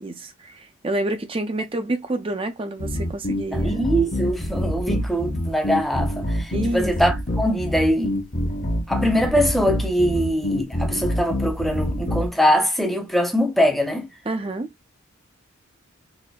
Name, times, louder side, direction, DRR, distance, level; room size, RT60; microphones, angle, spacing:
voice 1, 0.0-3.8 6.5-6.9 10.9-11.0 14.3-14.7, right 2 dB, 25° right, 0.6 m, -28 dB
sound 1, 2.8-12.3, equal, 40° left, 0.9 m, -26 dB
voice 2, 3.5-8.2 8.9-14.1, equal, ahead, 0.8 m, -22 dB
4.2 x 2.7 x 2.3 m
head